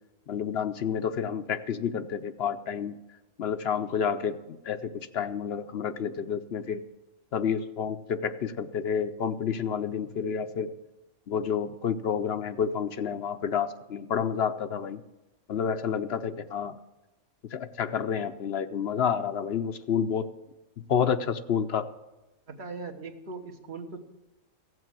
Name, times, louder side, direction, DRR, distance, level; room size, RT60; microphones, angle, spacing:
voice 1, 0.3-3.0 3.4-6.8 7.3-10.7 11.3-15.0 15.5-16.8 17.5-20.3 20.9-21.9, left 7 dB, 55° left, 10 dB, 0.8 m, -29 dB
voice 2, 22.5-24.0, right 4 dB, 50° right, 3 dB, 1.5 m, -39 dB
16.0 x 7.8 x 7.4 m, 0.98 s
omnidirectional pair, 1.5 m